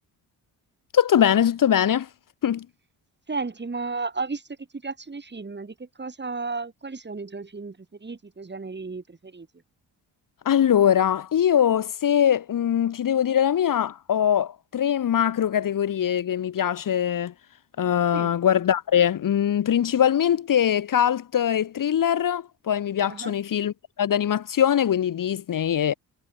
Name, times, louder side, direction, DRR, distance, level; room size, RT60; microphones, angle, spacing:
voice 1, 0.9-2.1 2.4-2.7 10.4-17.3 17.8-25.9, left 9 dB, 45° left, 0.9 m, -22 dB
voice 2, 3.3-4.4 4.8-7.8 8.0-9.5 18.1-18.3 23.1-23.3, right 4 dB, 25° right, 2.4 m, -33 dB
supercardioid pair, 65°, 44 cm